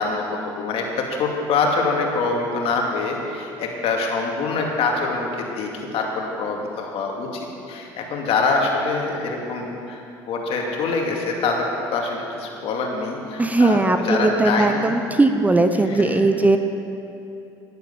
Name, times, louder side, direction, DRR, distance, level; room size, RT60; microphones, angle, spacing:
voice 1, 0.0-14.9 15.9-16.2, left 3 dB, 60° left, 0 dB, 2.4 m, -25 dB
voice 2, 13.4-16.6, right 2 dB, 15° right, 7 dB, 0.7 m, -18 dB
10.5 x 10.5 x 7.1 m, 2.8 s
supercardioid pair, 80°, 11 cm